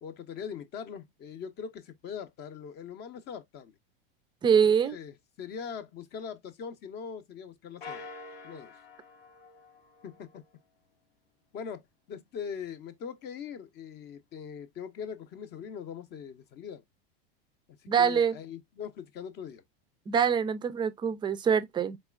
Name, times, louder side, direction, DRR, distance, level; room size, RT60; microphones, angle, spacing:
voice 1, 0.0-3.8 4.8-8.1 8.4-8.7 10.0-10.4 11.5-16.8 17.8-19.6, left 7 dB, 35° left, 0.7 m, -41 dB
voice 2, 4.4-5.0 17.9-18.4 20.1-22.0, right 7 dB, 15° right, 0.4 m, -24 dB
sound 1, 7.8-10.5, left 4 dB, 85° left, 1.1 m, -47 dB
4.1 x 3.2 x 2.3 m
supercardioid pair, 120°, 29 cm